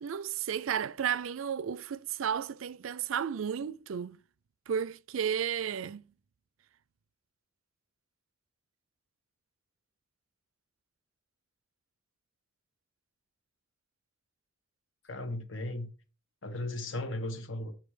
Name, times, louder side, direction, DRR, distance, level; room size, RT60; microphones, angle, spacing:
voice 1, 0.0-4.2 4.7-6.0, right 8 dB, 80° right, 0.4 m, -33 dB
voice 2, 15.0-15.9 16.4-17.7, left 1 dB, 70° left, 1.4 m, -36 dB
7.2 x 6.0 x 4.9 m
head